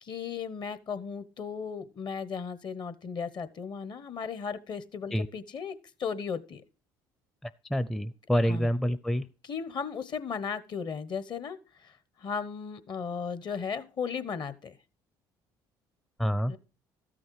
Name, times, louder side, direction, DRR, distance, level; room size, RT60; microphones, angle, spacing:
voice 1, 0.0-5.7 6.0-6.6 8.5-8.7 9.4-11.9 12.2-14.7 16.5-16.6, left 6 dB, 50° left, 14 dB, 1.0 m, -36 dB
voice 2, 7.7-9.3 16.2-16.5, equal, 5° left, 13 dB, 0.5 m, -27 dB
13.0 x 6.4 x 4.7 m, 0.33 s
hypercardioid pair, 70°, 10 cm